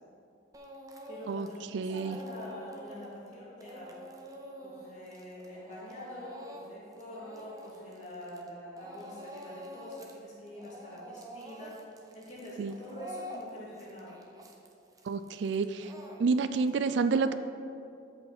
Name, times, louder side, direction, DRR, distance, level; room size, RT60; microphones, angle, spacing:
Speech / Crying sobbing, 0.5-1.6 1.9-8.5 8.8-10.2 10.5-16.7, equal, 20° right, 0.6 m, -47 dB
voice 1, 1.1-3.9 4.6-14.2, left 1 dB, 40° left, -7 dB, 2.3 m, -45 dB
voice 2, 1.7-2.2 12.6-12.7 15.1-15.9 16.2-17.3, right 4 dB, 70° right, 11 dB, 0.3 m, -29 dB
13.5 x 5.2 x 4.1 m, 2.5 s
head